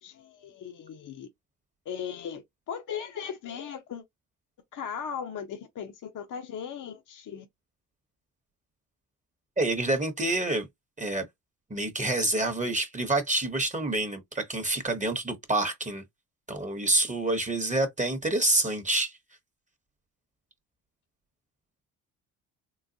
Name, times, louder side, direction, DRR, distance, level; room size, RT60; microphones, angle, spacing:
voice 1, 0.0-1.3 1.9-4.0 4.7-7.5, left 7 dB, 55° left, 0.7 m, -38 dB
voice 2, 9.6-10.7 11.0-11.2 11.7-16.0 16.5-19.1, right 2 dB, 20° right, 0.8 m, -27 dB
3.9 x 2.1 x 2.6 m
cardioid pair, 80°, 37 cm